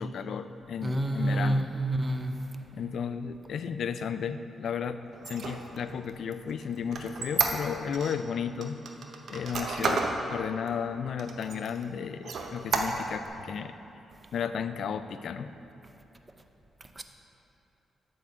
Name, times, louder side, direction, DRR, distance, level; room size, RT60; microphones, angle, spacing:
voice 1, 0.0-1.7 2.7-5.0 5.3-8.8 9.3-13.7 14.3-15.5, left 7 dB, 70° left, 11 dB, 0.3 m, -34 dB
voice 2, 0.8-2.4 17.0-17.1, right 1 dB, 25° right, 6 dB, 0.6 m, -28 dB
Squeak, 5.1-8.2 8.6-10.2 10.7-10.8 11.2-11.8 12.2-13.3, right 4 dB, 65° right, 0.7 m, -31 dB
8.8 x 3.7 x 6.7 m, 2.9 s
cardioid pair, 85°, 0 cm